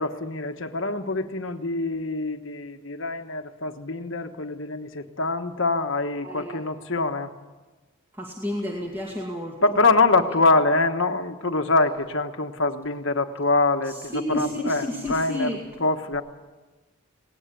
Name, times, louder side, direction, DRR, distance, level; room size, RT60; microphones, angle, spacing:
voice 1, 0.0-7.3 9.6-15.5 15.8-16.2, left 3 dB, 55° left, 6 dB, 1.4 m, -24 dB
voice 2, 6.2-6.6 8.2-9.6 13.9-15.6, left 1 dB, 10° right, -2 dB, 2.2 m, -30 dB
19.0 x 18.5 x 8.4 m, 1.3 s
head